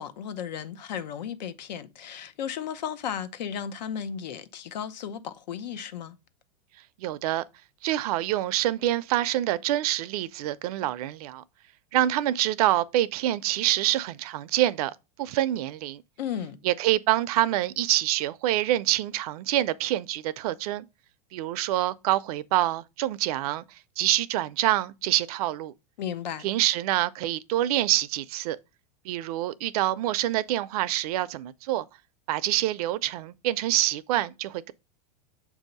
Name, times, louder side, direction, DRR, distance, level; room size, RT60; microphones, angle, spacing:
voice 1, 0.0-6.2 16.2-16.6 26.0-26.5, left 8 dB, 85° left, 0.8 m, -34 dB
voice 2, 7.0-7.4 7.8-11.4 11.9-14.9 15.2-16.0 16.6-20.8 21.3-23.6 24.0-25.7 26.4-28.6 29.0-31.9 32.3-34.7, right 14 dB, 60° right, 0.5 m, -26 dB
7.0 x 2.7 x 5.2 m
supercardioid pair, 140°, 21 cm